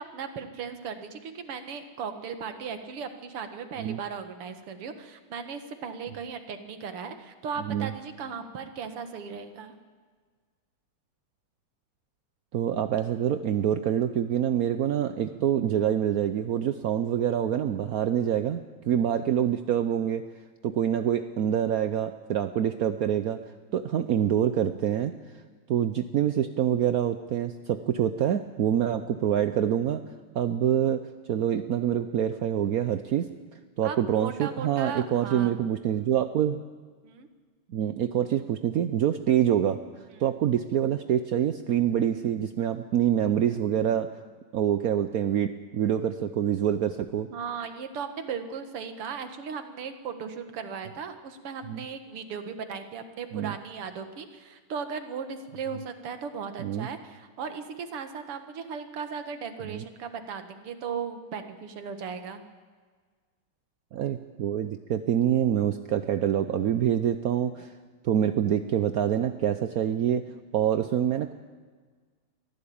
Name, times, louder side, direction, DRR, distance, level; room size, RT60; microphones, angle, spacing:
voice 1, 0.0-9.7 33.8-35.6 37.0-37.3 47.3-62.4, right 6 dB, 85° right, 8 dB, 2.6 m, -37 dB
voice 2, 7.6-7.9 12.5-20.2 20.6-23.4 23.7-25.1 25.7-30.0 30.3-33.3 33.8-36.6 37.7-39.8 40.2-44.1 44.5-47.3 51.7-51.8 53.3-53.5 56.6-56.9 59.6-59.8 63.9-67.7 68.0-70.2 70.5-71.3, right 10 dB, 70° right, 10 dB, 0.8 m, -26 dB
23.5 x 15.5 x 8.7 m, 1.5 s
omnidirectional pair, 2.4 m